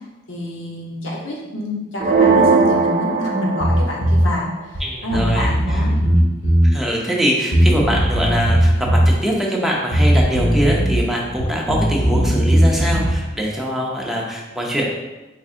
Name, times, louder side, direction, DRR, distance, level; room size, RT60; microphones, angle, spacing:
voice 1, 0.3-6.3, left 1 dB, 80° left, -1 dB, 0.8 m, -27 dB
sound 1, 2.0-4.1, right 4 dB, 45° right, 0.4 m, -17 dB
Bass guitar, 3.6-4.3 4.7-4.8 5.1-6.7 7.5-9.1 9.9-11.0 11.3-13.2, equal, 40° left, 1.1 m, -17 dB
voice 2, 4.8-5.9 6.6-15.0, equal, ahead, -3 dB, 0.6 m, -23 dB
3.9 x 3.5 x 2.5 m, 1.1 s
head